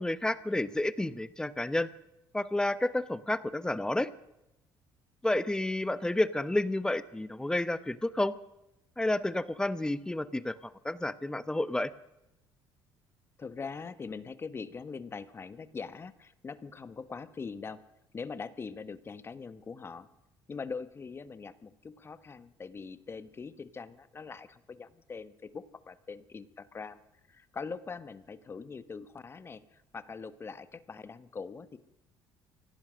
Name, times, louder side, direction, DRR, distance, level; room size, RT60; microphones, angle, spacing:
voice 1, 0.0-1.9 2.3-4.1 5.2-8.4 9.0-11.9, left 1 dB, 10° left, 15 dB, 1.0 m, -30 dB
voice 2, 13.4-17.8 18.1-20.1 20.5-27.0 27.3-31.8, left 5 dB, 30° left, 13 dB, 1.4 m, -42 dB
24.0 x 17.5 x 6.4 m, 0.90 s
cardioid pair, 115°, 9 cm